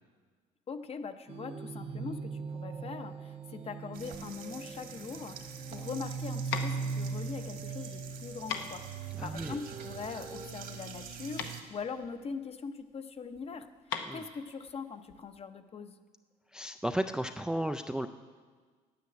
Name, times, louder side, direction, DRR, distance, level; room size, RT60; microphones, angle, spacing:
voice 1, 0.7-13.7 14.1-16.0, left 5 dB, 35° left, 9 dB, 0.8 m, -42 dB
sound 1, 1.3-10.5, right 4 dB, 35° right, 0.7 m, -40 dB
sound 2, 3.9-11.6, right 7 dB, 65° right, 1.6 m, -47 dB
sound 3, 6.5-15.4, left 7 dB, 90° left, 1.0 m, -42 dB
voice 2, 9.2-9.6 14.1-14.2 16.5-18.1, right 1 dB, 5° right, 8 dB, 0.4 m, -34 dB
9.4 x 9.4 x 7.8 m, 1.5 s
cardioid pair, 110°, 17 cm